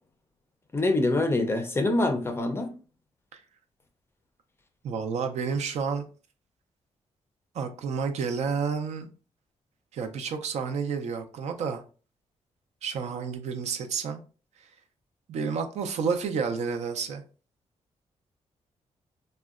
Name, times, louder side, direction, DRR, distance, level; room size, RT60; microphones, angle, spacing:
voice 1, 0.7-2.7, left 2 dB, 20° left, 0.4 m, -25 dB
voice 2, 4.8-6.0 7.5-9.1 9.9-11.8 12.8-14.2 15.3-17.2, right 5 dB, 75° right, 0.5 m, -30 dB
3.6 x 2.1 x 2.4 m
wide cardioid pair, 135°, 12 cm